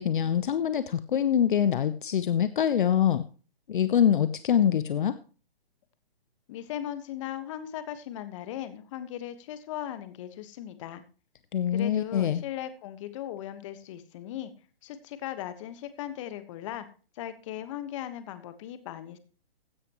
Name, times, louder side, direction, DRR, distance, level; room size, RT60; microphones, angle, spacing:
voice 1, 0.0-3.2 3.7-5.2 11.5-12.4, left 9 dB, 55° left, 13 dB, 0.8 m, -24 dB
voice 2, 6.5-11.0 11.7-14.5 14.8-16.8 17.1-19.2, left 11 dB, 30° left, 12 dB, 1.4 m, -38 dB
15.5 x 11.0 x 3.0 m, 0.37 s
hypercardioid pair, 150°, 29 cm